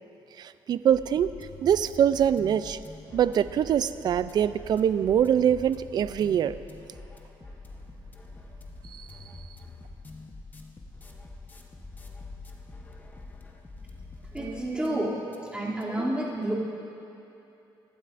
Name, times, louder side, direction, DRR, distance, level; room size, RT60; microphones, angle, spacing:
voice 1, 0.4-1.3 1.6-2.8 3.1-6.6 9.0-9.1, right 9 dB, 50° right, 14 dB, 0.4 m, -24 dB
sound 1, 0.9-15.0 15.3-15.4 15.8-15.9, left 3 dB, 20° left, 1.0 m, -45 dB
voice 2, 14.3-15.2 15.5-16.5, right 1 dB, 10° right, -6 dB, 2.7 m, -29 dB
25.0 x 11.5 x 2.6 m, 2.9 s
cardioid pair, 115°, 9 cm